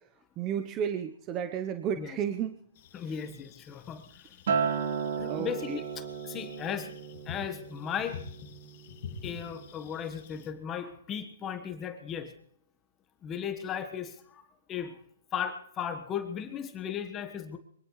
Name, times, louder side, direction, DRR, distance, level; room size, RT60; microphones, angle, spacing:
voice 1, 0.4-2.5 5.3-5.8, right 8 dB, 25° right, 8 dB, 0.8 m, -32 dB
sound 1, 2.8-10.5, left 6 dB, 50° left, 1.9 m, -48 dB
voice 2, 2.9-4.3 5.2-6.9 7.2-8.2 9.2-12.3 13.2-14.4 14.7-15.0 15.3-17.6, left 8 dB, 20° left, 8 dB, 1.3 m, -36 dB
Acoustic guitar, 4.5-8.9 9.3-9.7, right 6 dB, 65° right, 2.4 m, -34 dB
23.5 x 17.5 x 3.2 m, 0.69 s
hypercardioid pair, 150°, 0 cm